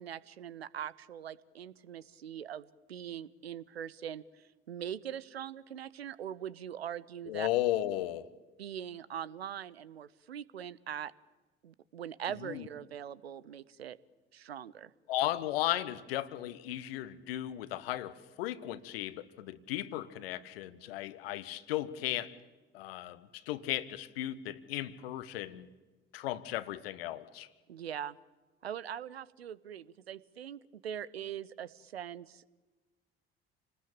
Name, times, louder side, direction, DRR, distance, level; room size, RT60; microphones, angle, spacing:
voice 1, 0.0-7.5 8.6-11.1 11.6-14.0 14.3-14.9 27.7-28.2 28.6-32.6, right 9 dB, 85° right, 20 dB, 0.7 m, -42 dB
voice 2, 7.3-8.3 12.4-12.7 15.1-22.3 22.7-25.7 26.1-27.5, left 14 dB, 70° left, 16 dB, 1.2 m, -35 dB
28.5 x 19.5 x 8.9 m, 1.2 s
figure-of-eight pair, 55°, 30 cm